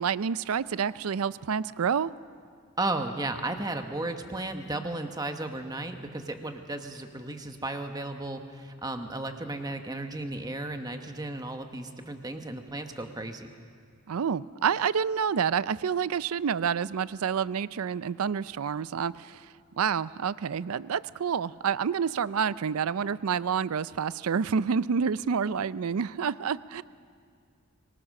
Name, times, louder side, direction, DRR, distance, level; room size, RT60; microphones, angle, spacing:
voice 1, 0.0-2.1 14.1-26.8, right 7 dB, 80° right, 18 dB, 0.5 m, -28 dB
voice 2, 2.8-13.5, right 2 dB, 20° right, 6 dB, 1.1 m, -34 dB
24.5 x 19.0 x 6.5 m, 2.2 s
head